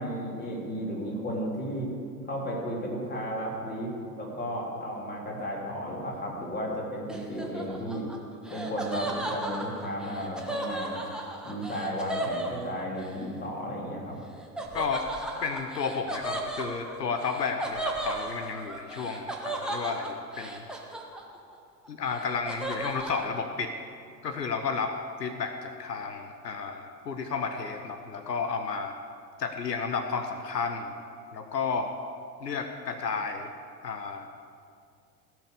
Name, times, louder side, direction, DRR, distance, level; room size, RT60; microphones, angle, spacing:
voice 1, 0.0-1.9 2.3-8.1 8.5-11.0 11.4-14.2, equal, 20° left, -3 dB, 3.3 m, -34 dB
Laughter, 7.1-13.1 14.6-21.5 21.8-23.3, right 1 dB, ahead, 1.3 m, -35 dB
voice 2, 14.7-15.1 15.4-20.7 21.9-23.7 24.2-24.9 25.2-28.9 29.4-30.9 31.3-31.9 32.4-33.5 33.8-34.3, left 5 dB, 85° left, 7 dB, 0.8 m, -32 dB
16.5 x 6.1 x 6.7 m, 2.4 s
figure-of-eight pair, 85°, 48 cm